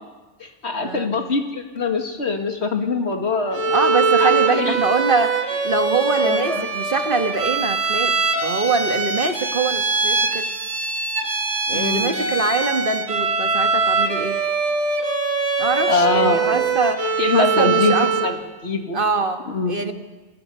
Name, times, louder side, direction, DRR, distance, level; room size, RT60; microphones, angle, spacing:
voice 1, 0.4-3.7 4.2-4.8 6.2-6.7 11.7-12.3 15.9-16.7 17.2-18.4 18.6-19.0 19.5-19.9, left 4 dB, 70° left, 4 dB, 2.3 m, -23 dB
Bowed string instrument, 3.5-18.4, right 4 dB, 75° right, 2.2 m, -22 dB
voice 2, 3.7-5.4 5.6-8.1 8.4-10.5 11.7-14.4 15.6-17.1 17.3-18.3 18.9-19.9, right 4 dB, 50° right, 6 dB, 1.6 m, -24 dB
29.0 x 20.0 x 5.6 m, 1.2 s
omnidirectional pair, 1.2 m